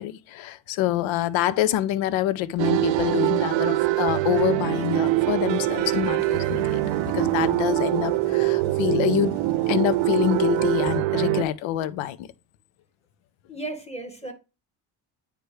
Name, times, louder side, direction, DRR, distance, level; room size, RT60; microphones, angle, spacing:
voice 1, 0.0-6.8 7.1-9.4 9.7-12.3, left 12 dB, 80° left, 0.6 m, -26 dB
sound 1, 2.6-11.4, right 18 dB, 70° right, 0.7 m, -23 dB
sound 2, 4.1-11.0, left 7 dB, 55° left, 1.6 m, -42 dB
voice 2, 13.5-14.3, right 2 dB, 15° left, 1.9 m, -34 dB
9.3 x 3.3 x 3.1 m
supercardioid pair, 75°, 47 cm